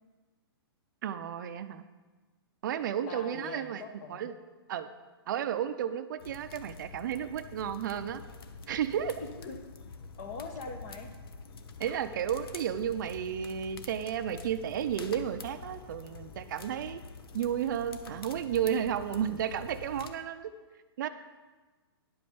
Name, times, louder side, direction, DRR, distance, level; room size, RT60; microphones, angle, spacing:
voice 1, 1.0-1.8 2.6-3.8 4.1-4.3 4.7-4.9 5.3-8.2 8.7-9.2 11.8-17.0 17.3-20.5 21.0-21.1, right 9 dB, 50° right, 10 dB, 0.6 m, -32 dB
voice 2, 3.1-4.3 9.2-9.6 10.2-11.1, left 4 dB, 35° left, 6 dB, 1.2 m, -42 dB
sound 1, 6.2-20.1, left 4 dB, 65° left, 0.9 m, -46 dB
10.5 x 5.1 x 7.0 m, 1.3 s
hypercardioid pair, 155°, 13 cm